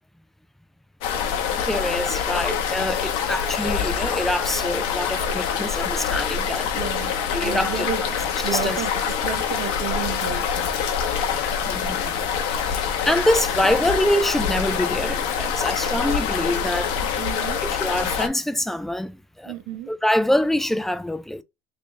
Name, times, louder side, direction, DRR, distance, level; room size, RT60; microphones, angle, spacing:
sound 1, 1.0-18.3, left 7 dB, 80° left, 0.9 m, -25 dB
voice 1, 1.6-6.8 7.3-7.8 8.5-8.8 11.7-12.2 12.6-17.2 17.6-19.5 19.9-21.4, left 1 dB, 5° left, 0.3 m, -25 dB
voice 2, 6.7-8.0 8.4-10.9 17.2-17.6 19.4-19.9, right 10 dB, 75° right, 0.9 m, -32 dB
3.4 x 2.6 x 3.7 m
cardioid pair, 125°, 9 cm